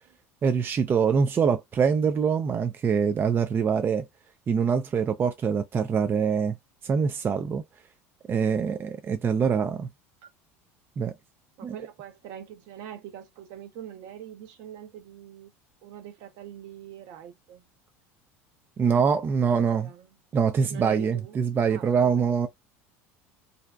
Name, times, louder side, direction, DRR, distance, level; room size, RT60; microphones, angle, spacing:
voice 1, 0.4-4.0 4.5-6.6 6.8-7.6 8.3-9.9 11.0-11.1 11.6-11.7 18.8-19.9 20.3-22.5, right 6 dB, 30° right, 0.3 m, -24 dB
voice 2, 11.6-15.5 15.8-17.7 18.8-19.0 19.4-20.1 20.7-22.5, right 10 dB, 60° right, 0.7 m, -43 dB
2.6 x 2.1 x 2.3 m
hypercardioid pair, 80°, 7 cm